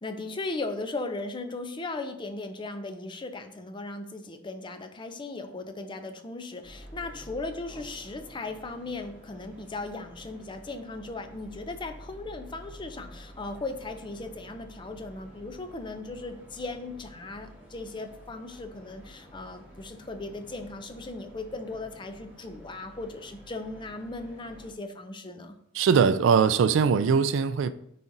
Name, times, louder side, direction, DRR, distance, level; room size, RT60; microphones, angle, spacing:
voice 1, 0.0-25.6, left 2 dB, 25° left, 0.5 m, -37 dB
sound 1, 6.6-24.7, equal, 10° right, 1.9 m, -50 dB
voice 2, 25.7-27.7, right 6 dB, 65° right, 0.3 m, -21 dB
9.5 x 4.1 x 2.6 m
head